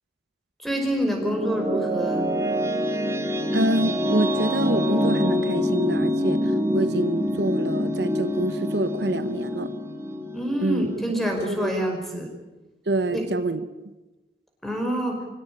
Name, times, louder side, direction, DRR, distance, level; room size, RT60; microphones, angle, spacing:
voice 1, 0.6-2.3 10.3-12.3 13.1-13.3 14.6-15.2, equal, ahead, 2 dB, 5.2 m, -26 dB
sound 1, 0.7-11.7, left 1 dB, 20° right, 1.8 m, -26 dB
voice 2, 3.5-9.7 10.6-10.9 11.5-11.7 12.9-13.9, right 2 dB, 75° right, 10 dB, 1.2 m, -26 dB
25.5 x 17.0 x 8.8 m, 1.1 s
head